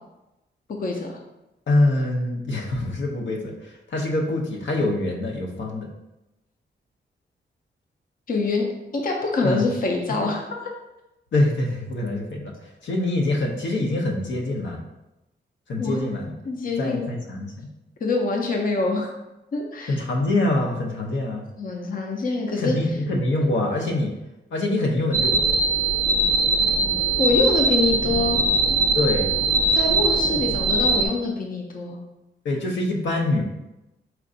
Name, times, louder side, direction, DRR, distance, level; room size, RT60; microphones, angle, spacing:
voice 1, 0.8-1.1 8.3-8.7 8.9-10.4 15.8-16.2 16.5-17.0 18.0-19.1 19.5-19.9 21.6-22.8 27.2-28.4 29.7-32.0, left 3 dB, 50° left, 1 dB, 0.6 m, -25 dB
voice 2, 1.7-5.9 9.4-9.7 10.2-10.3 11.3-14.8 15.7-16.3 16.8-17.7 19.9-21.4 22.5-24.1 24.5-25.5 28.9-29.3 32.4-33.4, left 2 dB, 80° left, 0 dB, 0.7 m, -24 dB
sound 1, 25.1-31.1, right 3 dB, 5° right, 0.7 m, -21 dB
4.5 x 2.5 x 3.8 m, 0.95 s
wide cardioid pair, 135°, 19 cm